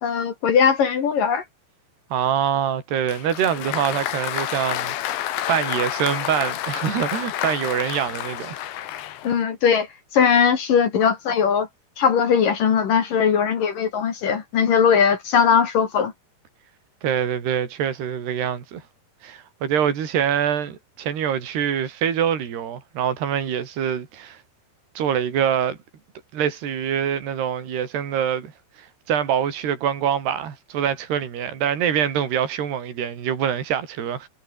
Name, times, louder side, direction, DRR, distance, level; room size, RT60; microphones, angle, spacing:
voice 1, 0.0-1.4 9.2-9.9 10.1-11.7 12.0-16.1, left 7 dB, 55° left, 3.5 m, -19 dB
voice 2, 2.1-5.0 5.5-8.5 17.0-18.8 19.2-24.4 25.0-25.8 26.3-28.5 28.8-34.3, right 9 dB, 65° right, 5.6 m, -24 dB
Applause, 3.1-9.4, left 12 dB, 75° left, 3.9 m, -29 dB
omnidirectional pair, 5.3 m